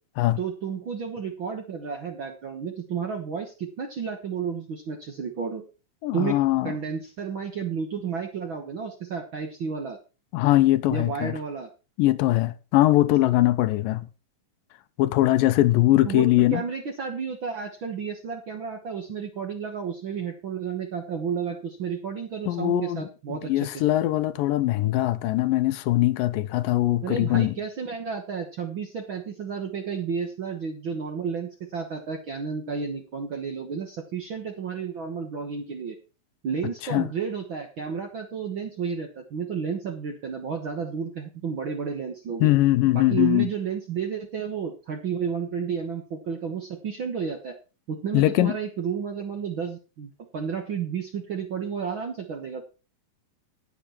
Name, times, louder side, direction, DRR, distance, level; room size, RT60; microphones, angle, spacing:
voice 1, 0.4-5.6 6.1-6.3 6.6-10.0 10.9-11.7 16.0-16.3 16.5-23.8 27.0-35.9 36.4-42.5 42.9-47.5 47.9-52.6, right 6 dB, 55° right, 1.4 m, -32 dB
voice 2, 6.0-6.7 10.3-11.3 12.0-14.1 15.0-16.6 22.5-27.6 36.8-37.1 42.4-43.5 48.1-48.5, left 16 dB, 85° left, 2.4 m, -21 dB
10.5 x 9.8 x 4.3 m
omnidirectional pair, 3.9 m